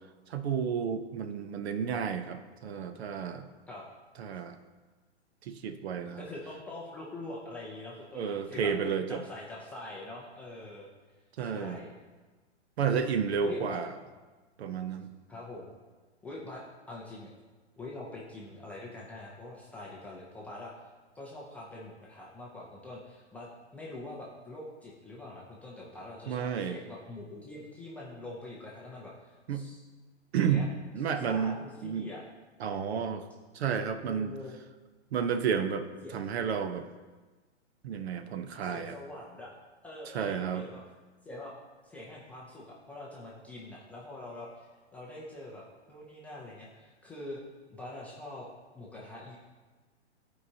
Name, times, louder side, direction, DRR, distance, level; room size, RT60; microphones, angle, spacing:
voice 1, 0.3-3.5 4.2-4.6 5.4-6.2 8.1-9.2 11.4-11.8 12.8-13.9 14.6-15.1 26.3-26.8 29.5-29.7 30.3-30.6 30.9-32.1 32.6-33.2 33.5-34.3 35.1-35.9 36.1-36.8 37.8-38.9 40.1-40.7, right 7 dB, 60° right, 9 dB, 0.7 m, -31 dB
voice 2, 6.2-8.7 9.1-10.9 11.4-11.9 12.8-13.1 13.4-13.8 15.3-15.8 16.2-17.3 17.8-20.7 21.1-29.8 30.4-30.7 31.0-32.2 34.0-34.6 36.0-36.2 38.6-39.6 39.8-40.8 41.2-41.5 41.8-44.5 44.9-47.4 47.7-48.5 48.7-49.4, left 2 dB, 5° left, -5 dB, 0.4 m, -44 dB
14.0 x 4.7 x 2.7 m, 1.3 s
hypercardioid pair, 130°, 35 cm